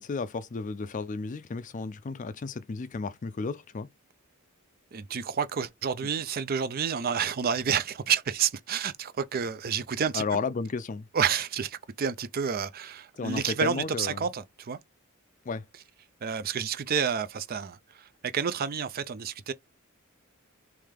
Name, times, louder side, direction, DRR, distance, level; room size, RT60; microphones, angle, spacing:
voice 1, 0.0-3.9 10.1-11.1 13.2-14.2 15.5-15.6, left 4 dB, 35° left, 0.4 m, -33 dB
voice 2, 4.9-10.2 11.1-14.8 16.2-19.5, right 7 dB, 45° right, 0.4 m, -29 dB
3.4 x 3.3 x 3.5 m
head